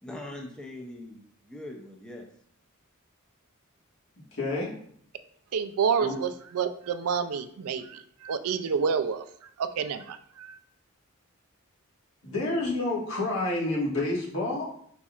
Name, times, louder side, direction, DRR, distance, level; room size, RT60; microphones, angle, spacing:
voice 1, 0.0-2.3, left 1 dB, 5° left, 0 dB, 0.5 m, -41 dB
voice 2, 4.3-4.7 6.0-6.1 12.2-14.6, left 2 dB, 65° left, -4 dB, 1.6 m, -28 dB
voice 3, 5.5-9.2 9.6-10.6, right 6 dB, 85° right, 10 dB, 0.4 m, -29 dB
5.2 x 4.1 x 2.4 m, 0.63 s
head